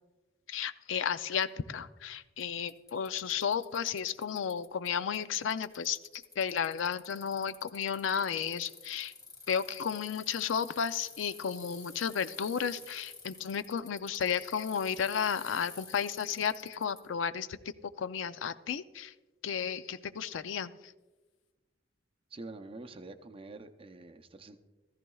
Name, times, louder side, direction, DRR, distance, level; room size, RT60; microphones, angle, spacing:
voice 1, 0.5-9.1 9.5-17.6 18.0-19.1 19.4-20.7, left 7 dB, 75° left, 13 dB, 0.4 m, -33 dB
Bicycle, 1.4-1.5 2.4-2.5 2.7-4.9 5.1-17.0, left 4 dB, 20° left, 2.3 m, -51 dB
voice 2, 22.3-24.6, right 2 dB, 30° right, 7 dB, 0.6 m, -46 dB
14.5 x 14.0 x 2.3 m, 1.2 s
head